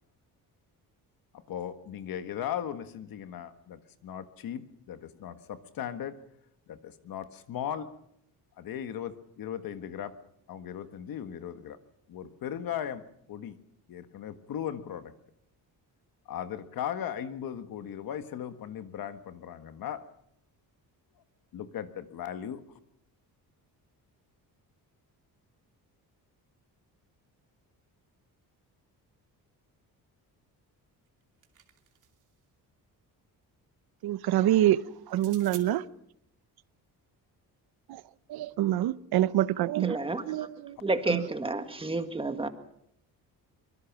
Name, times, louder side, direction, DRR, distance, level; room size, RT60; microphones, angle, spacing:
voice 1, 1.5-6.2 6.7-7.9 8.6-10.1 10.5-11.8 12.1-13.6 13.9-15.1 16.3-20.0 21.5-22.6, left 9 dB, 65° left, 1.7 m, -37 dB
sound 1, 31.1-32.4 35.1-35.7, right 9 dB, 55° right, 2.7 m, -49 dB
voice 2, 34.0-34.8 35.1-35.8 37.9-38.0 38.3-40.0 40.3-40.8 41.1-41.2, right 13 dB, 75° right, 0.8 m, -26 dB
voice 3, 39.8-40.5 40.8-42.5, right 2 dB, 15° right, 1.6 m, -30 dB
24.5 x 22.5 x 6.1 m
cardioid pair, 155°, 38 cm